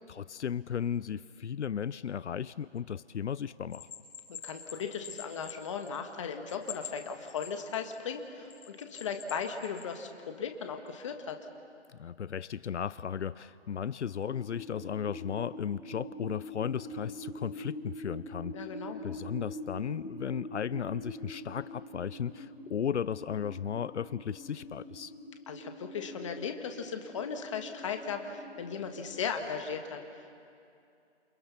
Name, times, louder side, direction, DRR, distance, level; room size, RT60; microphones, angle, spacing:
voice 1, 0.1-3.9 12.0-18.7 19.0-25.1, left 8 dB, 85° left, 17 dB, 0.7 m, -35 dB
Bell, 3.7-6.1 6.5-8.0 8.5-9.9, left 7 dB, 60° left, 6.6 m, -45 dB
voice 2, 4.3-11.4 18.5-19.0 25.5-30.4, left 6 dB, 25° left, 5 dB, 1.7 m, -37 dB
sound 1, 14.2-29.2, equal, ahead, 2.3 m, -45 dB
29.5 x 28.5 x 5.9 m, 2.5 s
hypercardioid pair, 170°, 34 cm